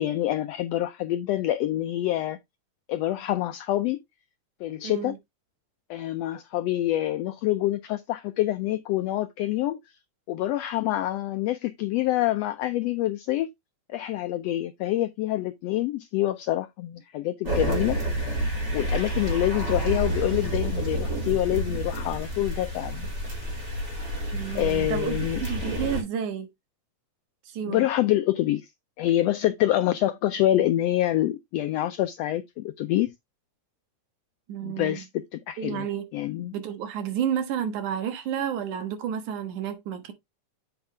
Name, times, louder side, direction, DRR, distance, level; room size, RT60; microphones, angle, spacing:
voice 1, 0.0-2.4 2.9-4.0 4.6-5.1 5.9-9.8 10.3-13.5 13.9-18.0 18.7-23.1 24.5-25.4 27.7-28.7 29.0-33.1 34.6-35.9 36.1-36.5, left 14 dB, 90° left, 1.4 m, -26 dB
voice 2, 4.8-5.2 24.3-26.5 27.5-27.9 34.5-35.1 35.6-36.1 36.5-40.1, right 8 dB, 80° right, 2.7 m, -31 dB
sound 1, 17.5-26.0, right 1 dB, 25° right, 3.5 m, -29 dB
8.1 x 5.2 x 3.3 m
omnidirectional pair, 3.4 m